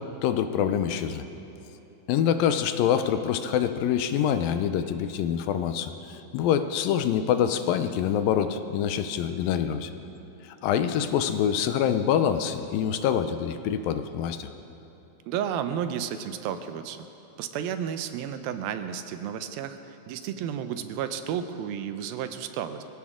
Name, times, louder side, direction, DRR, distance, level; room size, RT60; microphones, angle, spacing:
voice 1, 0.2-1.3 2.1-9.9 10.4-14.5, left 9 dB, 80° left, 9 dB, 2.4 m, -25 dB
voice 2, 15.3-17.0 17.4-22.8, right 9 dB, 85° right, 9 dB, 2.6 m, -32 dB
24.0 x 16.5 x 3.7 m, 3.0 s
omnidirectional pair, 4.1 m